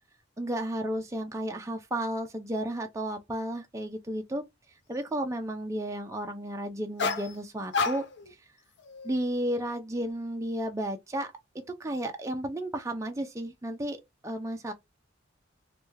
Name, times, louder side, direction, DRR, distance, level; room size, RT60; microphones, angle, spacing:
voice 1, 0.4-4.4 4.9-8.1 9.0-11.3 11.8-14.0 14.2-14.7, right 1 dB, 15° right, 0.4 m, -33 dB
sound 1, 7.0-7.3 7.7-8.3 8.8-9.1, left 4 dB, 60° left, 0.5 m, -30 dB
3.2 x 2.3 x 3.1 m
head